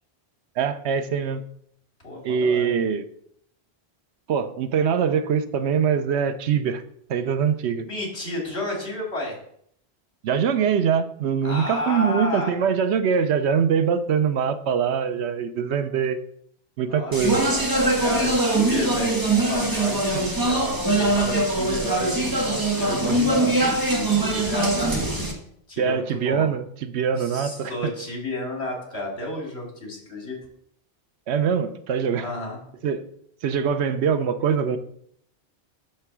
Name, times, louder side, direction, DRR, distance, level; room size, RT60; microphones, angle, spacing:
voice 1, 0.6-1.4 2.2-3.1 4.3-6.8 7.1-7.9 10.2-16.2 16.8-17.4 25.8-27.9 31.3-32.3 32.8-33.0 33.4-34.8, right 7 dB, 85° right, 11 dB, 0.9 m, -23 dB
voice 2, 2.0-2.7 7.9-9.4 11.4-12.5 16.8-25.2 25.7-26.5 27.2-30.4 32.1-32.6, left 1 dB, 70° left, -1 dB, 2.8 m, -32 dB
Speech, 17.1-25.3, right 2 dB, 20° right, 1.2 m, -22 dB
9.8 x 3.4 x 6.0 m, 0.69 s
omnidirectional pair, 1.1 m